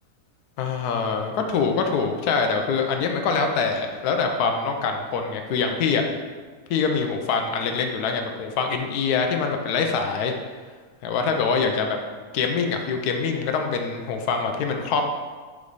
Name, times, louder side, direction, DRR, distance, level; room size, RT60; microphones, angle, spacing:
voice 1, 0.6-6.0 6.7-10.3 11.0-12.0 12.3-15.1, left 5 dB, 75° left, 4 dB, 1.1 m, -24 dB
8.2 x 3.2 x 3.9 m, 1.4 s
omnidirectional pair, 1.7 m